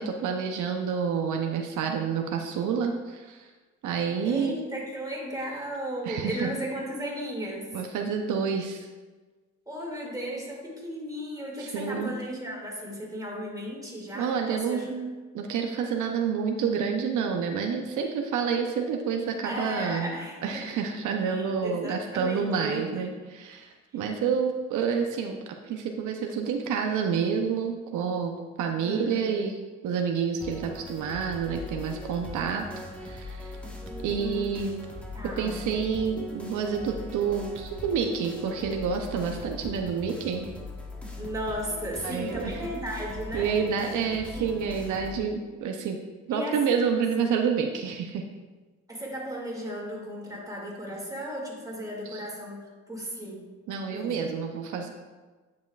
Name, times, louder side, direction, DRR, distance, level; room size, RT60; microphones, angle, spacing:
voice 1, 0.0-3.5 3.8-4.5 6.1-6.5 7.7-8.8 11.6-12.1 14.2-20.1 20.4-25.4 25.7-29.6 29.8-32.6 33.0-33.5 34.0-34.8 35.4-40.5 42.0-42.5 43.3-46.0 46.3-48.2 52.1-52.2 53.7-54.9, right 6 dB, 80° right, 3 dB, 0.7 m, -28 dB
voice 2, 4.2-7.7 9.7-14.9 19.4-20.7 21.2-23.1 28.8-29.5 33.8-34.6 35.1-35.6 41.2-43.5 43.8-44.5 46.3-46.9 48.9-53.5 53.9-54.3, equal, 10° right, -3 dB, 2.2 m, -35 dB
sound 1, 30.4-45.2, left 2 dB, 5° left, 1.3 m, -40 dB
9.7 x 6.2 x 2.4 m, 1.3 s
cardioid pair, 90°, 30 cm